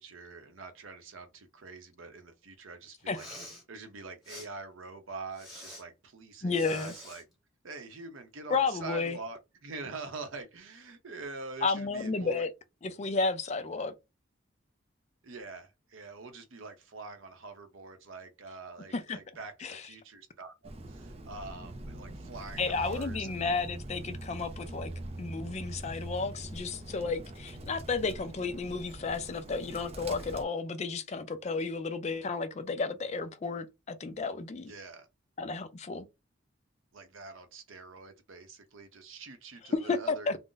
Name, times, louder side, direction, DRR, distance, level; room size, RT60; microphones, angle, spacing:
voice 1, 0.0-3.3 3.7-7.2 7.6-12.5 15.2-20.5 20.9-23.3 34.7-35.1 36.9-40.3, right 3 dB, 75° right, 0.7 m, -45 dB
Respiratory sounds, 3.0-3.6 4.2-4.5 5.3-5.8 6.5-7.2, left 1 dB, ahead, 1.2 m, -47 dB
voice 2, 6.4-6.9 8.5-9.2 11.6-12.5 12.8-13.9 18.9-19.2 19.6-19.9 22.6-24.9 25.2-34.7 35.4-36.1 39.7-40.4, left 4 dB, 35° left, 0.4 m, -32 dB
Bird, 20.6-30.4, right 1 dB, 30° right, 0.4 m, -43 dB
2.5 x 2.0 x 3.7 m
head